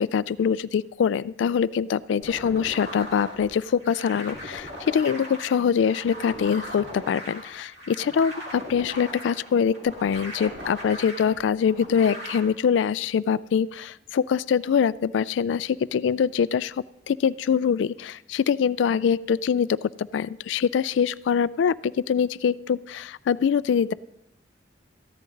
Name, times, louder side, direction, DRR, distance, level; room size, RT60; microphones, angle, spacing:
voice 1, 0.0-23.9, left 7 dB, 80° left, 19 dB, 0.3 m, -24 dB
sound 1, 2.2-12.4, equal, 60° right, 2.4 m, -39 dB
14.0 x 10.5 x 3.9 m, 0.85 s
head